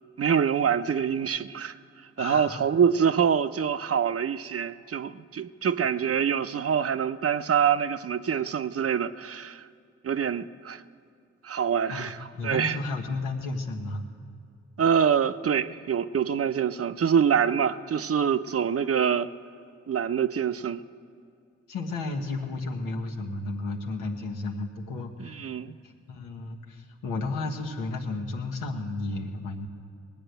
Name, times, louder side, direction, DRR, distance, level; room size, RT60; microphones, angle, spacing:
voice 1, 0.2-1.8 2.2-9.6 10.0-10.8 11.4-12.8 14.8-19.3 19.9-20.8 25.2-25.8, right 7 dB, 45° right, 0.7 m, -25 dB
voice 2, 2.2-2.6 11.9-14.0 21.7-25.6 25.8-29.7, left 3 dB, 90° left, 1.3 m, -33 dB
19.5 x 8.7 x 7.9 m
supercardioid pair, 40°, 32 cm